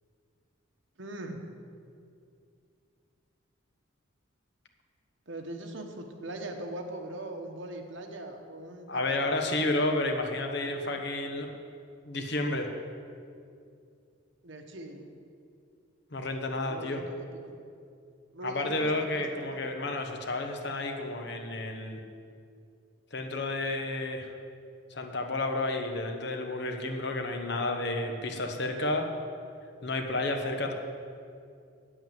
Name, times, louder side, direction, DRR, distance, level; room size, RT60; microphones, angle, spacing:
voice 1, 1.0-1.4 5.3-9.7 10.6-10.9 14.4-15.1 16.6-17.5 18.3-20.0, right 1 dB, 65° right, 4 dB, 1.1 m, -41 dB
voice 2, 8.9-11.5 12.0-12.7 16.1-17.0 18.4-22.0 23.1-24.3 24.9-29.1 29.8-30.7, left 2 dB, 55° left, 4 dB, 1.1 m, -31 dB
9.3 x 8.2 x 7.6 m, 2.4 s
head